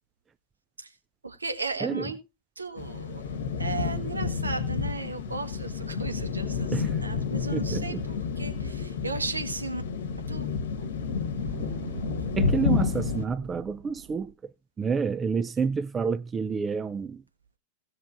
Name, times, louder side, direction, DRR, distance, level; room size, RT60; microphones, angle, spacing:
voice 1, 1.2-2.2 2.6-9.8 10.3-10.5 10.8-10.9 11.4-11.5, right 3 dB, 80° right, 1.4 m, -35 dB
sound 1, 2.8-13.2, left 5 dB, 60° left, 1.2 m, -30 dB
sound 2, 5.2-6.2 7.0-7.1 7.8-8.2 9.9-14.3, right 7 dB, 45° right, 1.2 m, -45 dB
voice 2, 7.5-8.0 12.4-14.3 14.8-17.2, right 5 dB, 20° right, 0.4 m, -29 dB
18.0 x 6.4 x 2.5 m
figure-of-eight pair, 90°, 0 cm